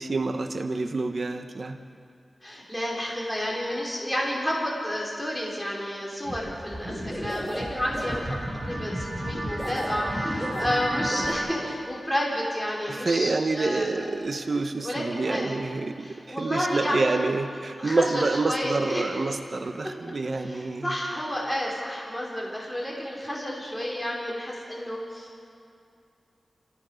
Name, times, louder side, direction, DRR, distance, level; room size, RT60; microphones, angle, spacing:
voice 1, 0.0-1.8 12.9-20.9, right 3 dB, 55° right, 6 dB, 1.2 m, -27 dB
voice 2, 2.4-8.4 8.7-14.0 14.8-15.6 16.0-17.2 17.7-19.1 19.8-25.4, equal, 5° left, -3 dB, 5.0 m, -31 dB
sound 1, 6.2-6.4 6.7-11.3, equal, 10° right, 6.5 m, -31 dB
28.5 x 17.5 x 6.6 m, 2.4 s
wide cardioid pair, 80°, 0 cm